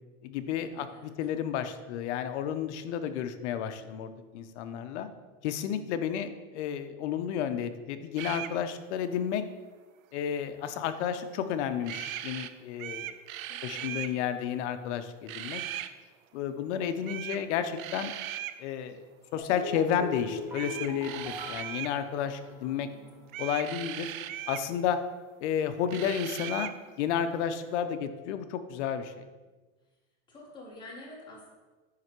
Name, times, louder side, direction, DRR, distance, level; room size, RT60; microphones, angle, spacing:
voice 1, 0.2-5.1 5.4-9.4 10.1-13.2 13.6-15.6 16.3-18.1 18.6-19.0 19.3-22.9 23.4-24.1 24.5-25.0 25.4-26.7 27.0-29.3, left 8 dB, 60° left, 10 dB, 0.6 m, -32 dB
voice 2, 0.7-1.1 13.5-14.3 22.6-23.2 30.3-31.5, left 1 dB, 10° left, -4 dB, 1.3 m, -49 dB
sound 1, 8.2-8.5 11.8-12.5 12.8-14.1 15.3-15.9 17.1-17.4 17.8-18.6 20.5-22.0 23.3-24.7 25.9-26.8, right 12 dB, 90° right, 0.5 m, -38 dB
sound 2, 19.4-22.8 23.1-23.2, left 3 dB, 5° right, 0.4 m, -41 dB
9.6 x 3.3 x 3.0 m, 1.3 s
supercardioid pair, 155°, 40 cm